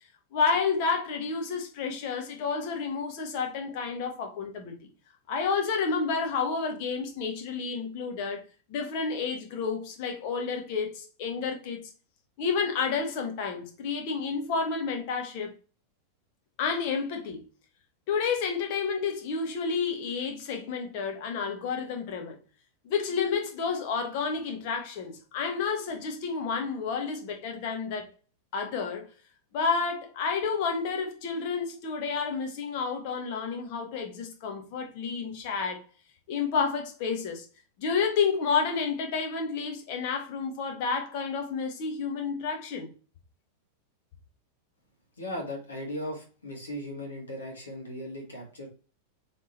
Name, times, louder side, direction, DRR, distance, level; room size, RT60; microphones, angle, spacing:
voice 1, 0.3-4.9 5.3-8.4 8.7-11.8 12.4-15.5 16.6-17.5 18.1-22.3 22.8-28.1 28.5-29.1 29.5-35.8 36.3-37.4 37.8-42.9, left 5 dB, 45° left, 1.3 m, -30 dB
voice 2, 45.2-48.7, left 1 dB, 70° left, 1.8 m, -37 dB
3.7 x 3.5 x 4.2 m
figure-of-eight pair, 90°, 0 cm